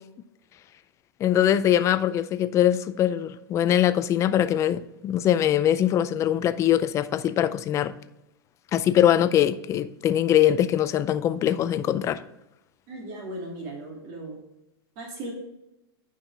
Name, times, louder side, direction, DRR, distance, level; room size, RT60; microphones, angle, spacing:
voice 1, 1.2-8.0 8.7-12.2, left 11 dB, 25° left, 0.4 m, -22 dB
voice 2, 12.9-14.4 15.0-15.3, right 2 dB, 45° right, 2.6 m, -37 dB
9.7 x 5.8 x 3.4 m
supercardioid pair, 140°, 13 cm